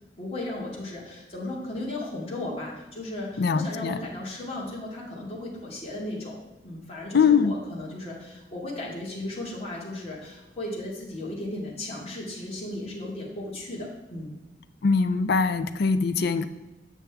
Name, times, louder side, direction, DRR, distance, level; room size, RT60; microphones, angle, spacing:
voice 1, 0.2-6.4 6.6-14.3, left 1 dB, 35° left, -4 dB, 1.9 m, -35 dB
voice 2, 3.4-4.0 7.1-7.5 14.8-16.5, left 5 dB, 60° left, 11 dB, 0.5 m, -22 dB
8.0 x 6.0 x 3.5 m, 1.1 s
head